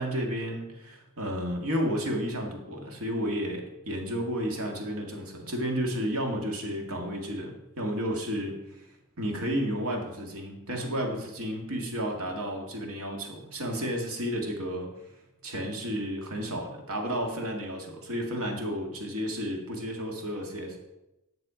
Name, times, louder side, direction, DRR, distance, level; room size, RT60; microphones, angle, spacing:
voice 1, 0.0-8.6 9.2-14.9 15.4-20.8, equal, 85° right, 1 dB, 2.1 m, -32 dB
10.0 x 6.7 x 5.1 m, 0.95 s
head